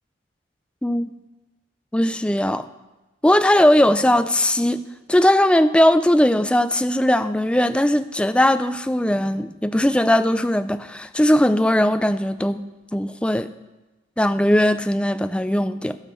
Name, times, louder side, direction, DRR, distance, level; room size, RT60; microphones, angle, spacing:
voice 1, 0.8-1.1 1.9-2.7 3.2-4.8 5.1-12.6 12.9-13.5 14.2-16.0, left 1 dB, 5° left, 11 dB, 0.3 m, -19 dB
17.0 x 6.2 x 4.4 m, 1.1 s
head